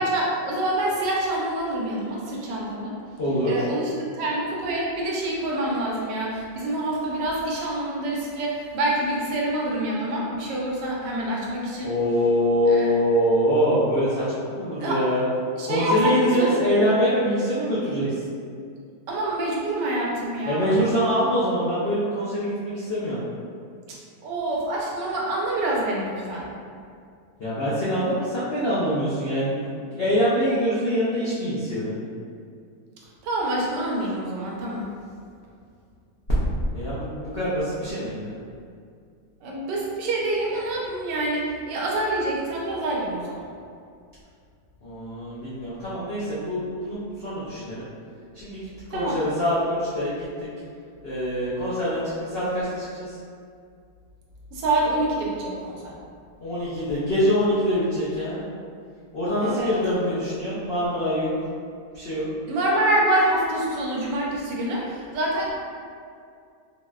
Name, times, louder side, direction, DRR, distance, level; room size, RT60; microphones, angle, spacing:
voice 1, 0.0-2.9 3.5-11.9 12.7-12.9 14.8-15.0 15.6-16.6 19.1-20.8 23.9-24.0 24.2-26.5 33.2-34.9 39.4-43.4 48.9-49.2 54.5-55.9 59.4-59.7 62.5-65.5, right 1 dB, 90° right, -3 dB, 1.3 m, -26 dB
voice 2, 3.2-3.7 11.8-15.2 15.7-18.2 20.5-23.2 27.4-32.0 36.6-38.4 44.8-47.9 48.3-50.5 51.0-53.2 56.4-58.4 59.1-61.3 61.9-62.3, equal, 85° left, -10 dB, 0.5 m, -24 dB
4.0 x 2.1 x 2.3 m, 2.3 s
omnidirectional pair, 1.8 m